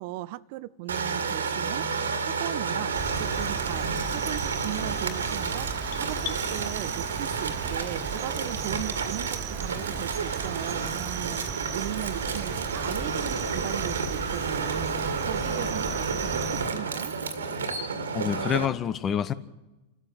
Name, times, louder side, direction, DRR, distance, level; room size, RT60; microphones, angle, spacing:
voice 1, 0.0-1.9 2.2-17.1, right 17 dB, 50° right, 0.7 m, -38 dB
sound 1, 0.9-18.7, right 5 dB, 70° right, 2.1 m, -31 dB
Cricket, 2.9-16.7, right 6 dB, 30° right, 1.4 m, -36 dB
sound 2, 4.6-6.5, left 11 dB, 50° left, 1.3 m, -41 dB
voice 2, 18.1-19.3, left 9 dB, 25° left, 1.1 m, -27 dB
29.5 x 13.5 x 7.8 m
figure-of-eight pair, 90°, 0 cm